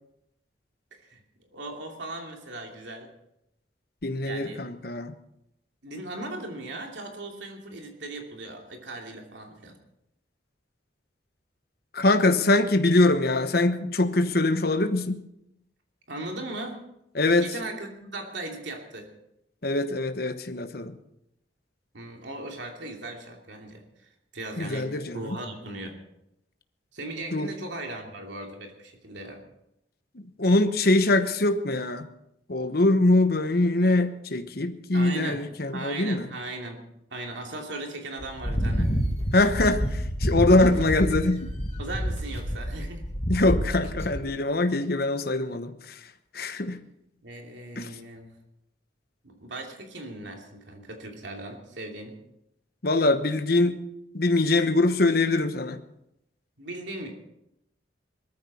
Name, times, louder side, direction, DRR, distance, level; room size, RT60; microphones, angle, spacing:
voice 1, 0.9-3.1 4.2-4.6 5.8-9.8 16.1-16.8 17.3-19.1 21.9-26.0 26.9-29.4 34.9-35.4 35.7-36.8 37.1-38.9 40.5-40.7 41.8-43.0 47.2-48.4 49.2-52.2 56.6-57.1, right 2 dB, 75° right, 2 dB, 2.8 m, -38 dB
voice 2, 4.0-5.1 11.9-15.3 17.1-17.5 19.6-21.0 24.6-25.4 27.3-27.5 30.1-32.1 32.5-36.3 39.3-41.5 43.3-46.0 46.3-46.8 47.8-47.9 52.8-53.8 54.1-55.8, left 2 dB, 55° left, 9 dB, 1.0 m, -23 dB
sound 1, 38.2-44.2, equal, 30° left, 2.0 m, -28 dB
20.5 x 14.0 x 4.3 m, 0.81 s
head